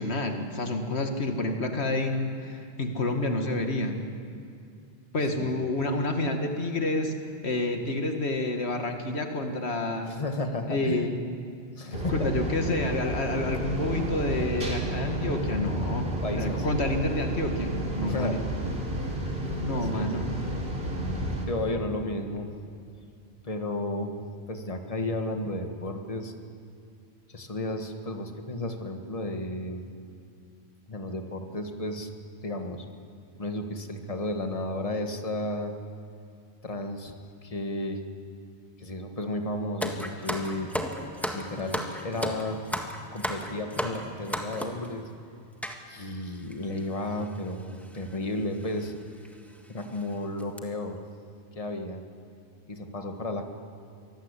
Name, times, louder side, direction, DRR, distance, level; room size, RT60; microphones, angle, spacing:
voice 1, 0.0-4.1 5.1-7.2 7.4-10.1 10.7-11.2 11.9-18.4 19.4-20.3, left 2 dB, 85° left, 5 dB, 2.1 m, -29 dB
voice 2, 5.4-5.7 10.1-11.2 11.7-12.5 16.2-16.7 18.0-18.4 19.4-19.6 19.9-20.4 21.5-22.5 23.4-24.2 24.5-26.3 27.3-29.8 30.9-32.1 32.4-32.8 33.4-35.7 36.6-38.0 38.8-40.7 41.3-42.6 43.1-45.1 45.9-49.0 49.7-51.0 51.5-52.0 52.7-53.5, left 1 dB, 35° left, 5 dB, 1.7 m, -33 dB
sound 1, 11.9-21.5, right 1 dB, 70° right, 3.7 m, -31 dB
sound 2, 39.8-44.9 45.6-45.8 46.5-46.6 46.8-47.0 47.9-48.1 48.6-48.7 49.3-49.4 49.8-50.0 50.4-50.6, equal, ahead, 1.7 m, -33 dB
24.5 x 19.0 x 8.3 m, 2.5 s
omnidirectional pair, 1.1 m